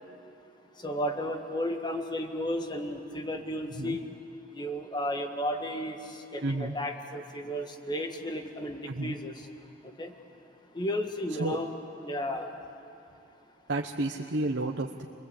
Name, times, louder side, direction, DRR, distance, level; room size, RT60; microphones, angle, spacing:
voice 1, 0.8-4.0 4.5-6.0 6.3-9.3 10.0-10.1 10.7-11.7 12.0-12.5, equal, 25° left, 5 dB, 1.6 m, -33 dB
voice 2, 6.4-6.7 8.8-9.2 11.4-11.6 13.7-15.1, right 2 dB, 70° right, 1 dB, 1.0 m, -31 dB
29.0 x 21.5 x 8.4 m, 2.7 s
head